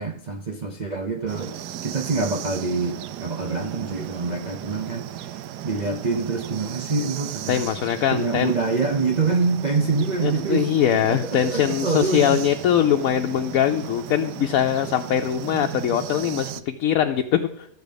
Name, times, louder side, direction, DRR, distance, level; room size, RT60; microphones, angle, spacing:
voice 1, 0.0-1.6 1.8-7.7 8.1-12.4, right 4 dB, 55° right, 2 dB, 0.5 m, -26 dB
sound 1, 1.3-16.6, right 11 dB, 85° right, 1.2 m, -36 dB
voice 2, 7.5-8.5 10.2-17.7, left 10 dB, 70° left, 5 dB, 0.9 m, -22 dB
12.0 x 8.1 x 5.2 m, 0.74 s
omnidirectional pair, 1.8 m